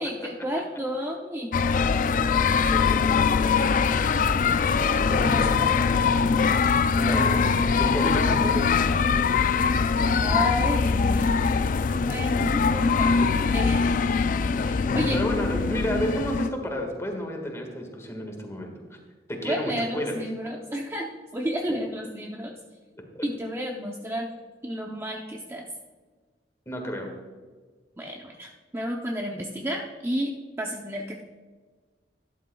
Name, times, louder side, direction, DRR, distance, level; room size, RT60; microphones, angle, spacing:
voice 1, 0.0-1.5 5.1-6.1 8.0-8.1 10.2-11.3 12.1-13.3 13.5-14.2 14.6-15.2 19.4-21.1 21.3-22.6 23.2-24.3 24.6-25.7 28.0-31.2, equal, 15° right, 0 dB, 0.7 m, -31 dB
sound 1, 1.5-16.5, left 5 dB, 50° left, 0.4 m, -22 dB
voice 2, 2.3-3.7 7.0-8.7 11.9-12.0 12.4-12.5 14.8-18.7 19.3-20.1 26.6-27.1, equal, 15° left, 2 dB, 1.7 m, -32 dB
12.5 x 11.5 x 2.3 m, 1.5 s
head